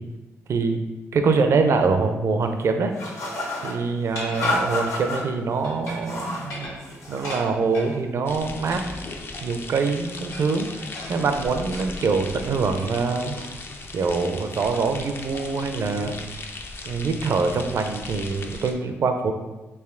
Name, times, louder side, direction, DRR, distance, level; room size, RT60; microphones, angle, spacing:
voice 1, 1.1-2.9 3.6-6.7 7.1-8.8 9.4-13.4 13.9-16.2 16.8-19.3, right 4 dB, 60° right, 6 dB, 0.4 m, -24 dB
sound 1, 3.0-3.8 4.3-5.2 5.8-6.5 6.8-7.4, left 1 dB, 60° left, 0.9 m, -29 dB
sound 2, 4.1-5.3 5.6-6.1 6.4-7.9 8.7-9.7 10.3-12.5 13.3-13.7 14.0-14.1 14.7-15.0 15.3-15.5 16.0-16.4, left 1 dB, 80° left, 1.2 m, -38 dB
sound 3, 8.3-18.7, left 3 dB, 45° left, 0.4 m, -37 dB
3.3 x 2.7 x 3.6 m, 1.1 s
cardioid pair, 80°, 5 cm